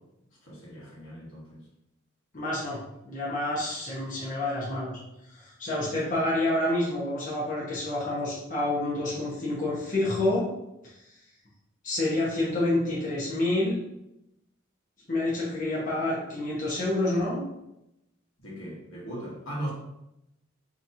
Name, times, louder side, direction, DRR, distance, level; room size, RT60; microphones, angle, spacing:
voice 1, 0.4-1.7 18.4-19.7, right 1 dB, 70° left, -5 dB, 1.3 m, -38 dB
voice 2, 2.3-2.8 3.0-5.0 5.3-10.5 10.8-10.9 11.8-13.8 15.1-17.4, left 1 dB, 40° left, -7 dB, 1.0 m, -28 dB
4.0 x 2.9 x 2.7 m, 0.86 s
head